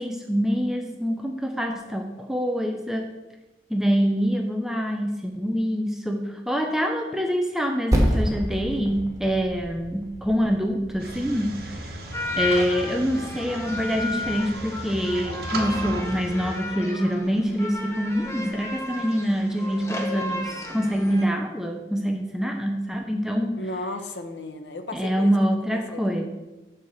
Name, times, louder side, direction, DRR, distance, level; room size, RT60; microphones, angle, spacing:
voice 1, 0.0-3.1 3.7-11.9 12.4-23.6 24.9-26.3, equal, 5° right, 3 dB, 0.6 m, -25 dB
Percussion, 7.9-12.8, equal, 20° right, 1.4 m, -29 dB
sound 1, 11.0-16.6, right 2 dB, 55° right, 1.3 m, -36 dB
sound 2, 12.1-21.3, left 2 dB, 15° left, 0.9 m, -34 dB
voice 2, 23.6-26.3, left 2 dB, 85° left, 7 dB, 0.8 m, -35 dB
7.4 x 4.8 x 6.9 m, 1.1 s
head